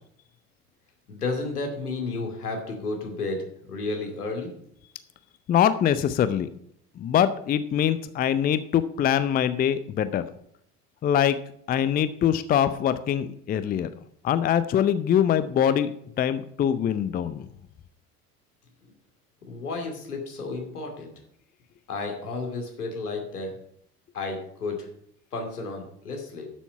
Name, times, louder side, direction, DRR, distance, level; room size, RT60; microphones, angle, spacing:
voice 1, 1.1-4.5 19.5-21.1 21.9-23.5 24.1-24.9 25.3-26.5, left 3 dB, 75° left, 3 dB, 2.6 m, -32 dB
voice 2, 5.5-6.5 7.0-10.2 11.0-11.4 11.7-13.9 14.2-17.5, left 9 dB, 20° left, 13 dB, 0.5 m, -23 dB
11.5 x 7.1 x 5.6 m, 0.69 s
figure-of-eight pair, 70°, 46 cm